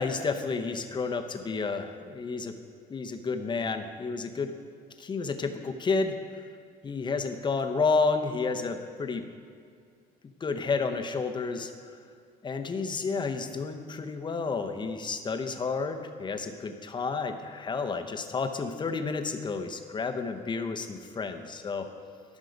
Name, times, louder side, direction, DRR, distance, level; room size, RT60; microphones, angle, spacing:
voice 1, 0.0-2.5 2.9-4.5 5.0-6.4 6.8-9.2 10.4-11.7 12.4-21.9, left 4 dB, 25° left, 7 dB, 0.8 m, -31 dB
12.0 x 6.3 x 5.2 m, 2.2 s
cardioid pair, 110°, 17 cm